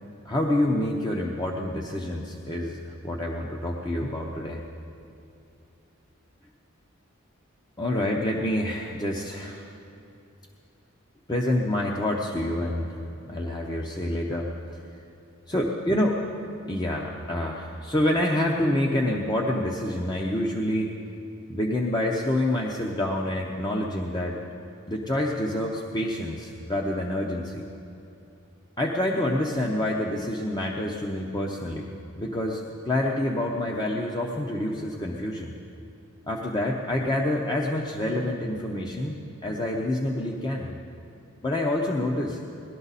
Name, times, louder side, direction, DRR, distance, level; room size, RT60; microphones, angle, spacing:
voice 1, 0.2-4.6 7.8-9.7 11.3-13.0 13.2-14.5 15.5-16.2 16.7-20.9 21.5-24.4 24.9-27.6 28.8-35.5 36.3-40.7 41.4-42.4, left 1 dB, 20° left, -1 dB, 0.7 m, -27 dB
19.0 x 12.0 x 4.1 m, 2.7 s
head